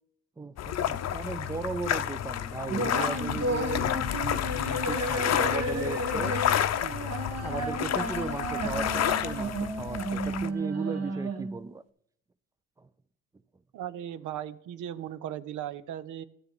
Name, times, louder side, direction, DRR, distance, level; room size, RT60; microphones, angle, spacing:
voice 1, 0.4-6.4 6.8-7.0 7.4-11.8 12.8-12.9, right 4 dB, 10° right, 0.4 m, -37 dB
sound 1, 0.6-10.5, left 10 dB, 60° left, 0.7 m, -30 dB
sound 2, 2.7-11.7, right 2 dB, 55° right, 1.7 m, -33 dB
voice 2, 13.7-16.2, right 11 dB, 80° right, 0.7 m, -37 dB
13.5 x 8.0 x 4.1 m
cardioid pair, 90°, 30 cm